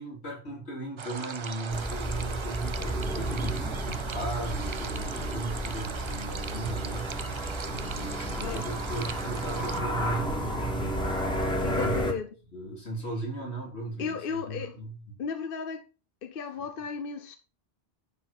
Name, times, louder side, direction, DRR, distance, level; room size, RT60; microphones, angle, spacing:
voice 1, 0.0-12.0 12.5-15.0, right 2 dB, 85° left, 3.8 m, -36 dB
sound 1, 1.0-9.8, right 6 dB, 40° right, 0.4 m, -39 dB
sound 2, 1.7-12.1, right 1 dB, 5° left, 2.0 m, -32 dB
voice 2, 11.6-12.3 14.0-14.7 15.2-15.8 16.2-17.4, left 6 dB, 60° left, 1.0 m, -34 dB
11.0 x 4.9 x 5.3 m
omnidirectional pair, 1.1 m